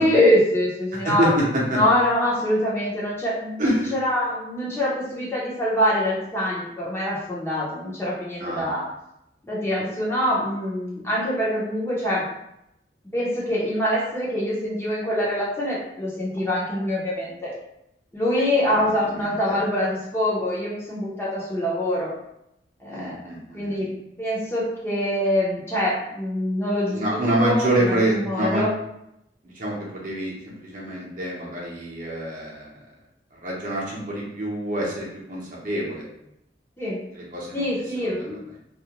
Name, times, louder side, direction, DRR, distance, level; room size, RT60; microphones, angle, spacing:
voice 1, 0.0-1.3 1.7-8.8 9.5-12.2 13.1-17.5 18.1-22.1 22.8-23.2 23.5-23.9 24.2-28.7 36.8-37.0 37.5-38.4, left 1 dB, 15° left, -7 dB, 0.6 m, -24 dB
voice 2, 1.0-1.8 3.6-3.9 8.4-8.7 18.6-19.6 22.9-23.8 26.9-28.6 29.4-32.7 33.3-36.0 37.1-37.6 38.0-38.1, right 1 dB, 50° right, -4 dB, 0.7 m, -26 dB
2.4 x 2.1 x 2.8 m, 0.81 s
head